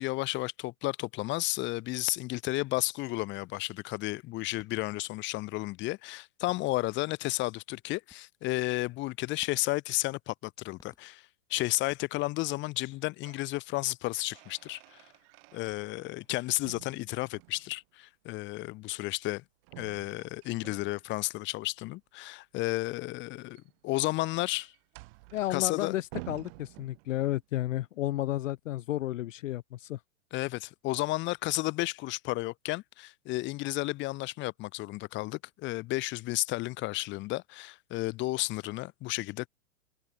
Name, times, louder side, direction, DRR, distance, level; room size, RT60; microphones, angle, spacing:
voice 1, 0.0-15.0 15.5-19.4 19.8-24.7 25.5-25.9 30.3-39.5, left 20 dB, 30° left, 1.2 m, -32 dB
sound 1, 4.6-5.1 6.1-6.2 6.5-7.1 8.1-8.6 9.4-10.0 10.8-11.4 11.9-12.6, left 3 dB, 10° left, 5.0 m, -64 dB
sound 2, 12.9-13.5 13.9-16.3 16.6-17.8 19.6-21.3 23.3-27.4, right 25 dB, 45° right, 2.9 m, -50 dB
voice 2, 25.3-30.0, left 14 dB, 70° left, 0.6 m, -32 dB
hypercardioid pair, 125°, 40 cm